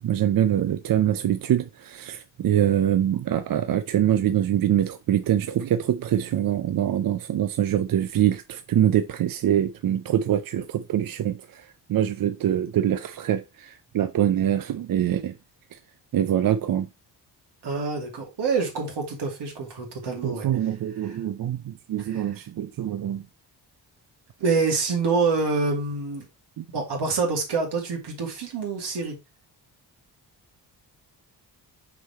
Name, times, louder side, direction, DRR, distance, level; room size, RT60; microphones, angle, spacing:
voice 1, 0.0-15.4 15.7-15.8 16.1-16.9 20.2-23.3 26.6-26.7, right 10 dB, 55° right, 0.5 m, -24 dB
voice 2, 17.6-20.5 21.0-21.1 22.0-22.3 24.4-26.2 26.7-29.1, right 4 dB, 75° right, 2.4 m, -26 dB
5.8 x 3.9 x 4.2 m
cardioid pair, 115°, 41 cm